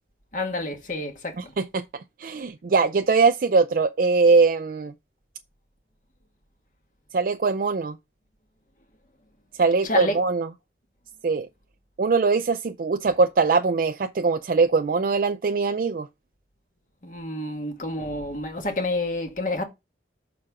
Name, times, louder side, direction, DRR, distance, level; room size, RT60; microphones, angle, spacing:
voice 1, 0.3-1.5 9.8-10.2 17.0-19.6, left 2 dB, 45° left, 1.7 m, -29 dB
voice 2, 1.4-1.8 2.2-4.9 7.1-8.0 9.6-10.5 11.2-11.5 12.0-16.1, right 4 dB, 50° right, 0.4 m, -21 dB
6.1 x 4.7 x 4.8 m
head